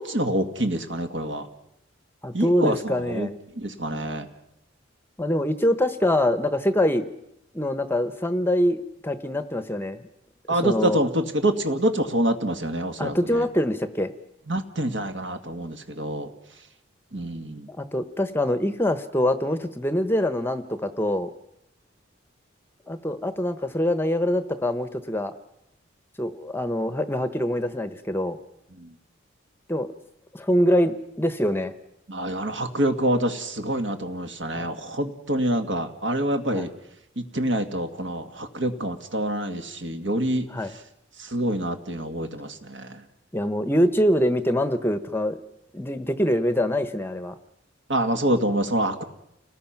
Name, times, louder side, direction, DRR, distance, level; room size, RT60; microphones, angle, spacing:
voice 1, 0.0-1.5 2.3-3.3 3.6-4.3 10.5-13.1 14.5-16.3 17.1-17.7 28.8-28.9 32.1-36.7 37.2-40.5 41.3-43.0 47.9-49.0, right 1 dB, 65° right, 6 dB, 2.0 m, -26 dB
voice 2, 2.2-3.3 5.2-7.0 7.5-10.0 10.5-11.0 13.0-14.1 17.7-21.3 22.9-25.3 26.2-28.4 29.7-29.9 30.3-31.7 34.5-34.7 36.5-36.7 40.5-40.8 43.3-45.4 45.7-47.4, left 1 dB, 10° left, 10 dB, 0.9 m, -24 dB
29.5 x 19.5 x 5.9 m, 0.84 s
head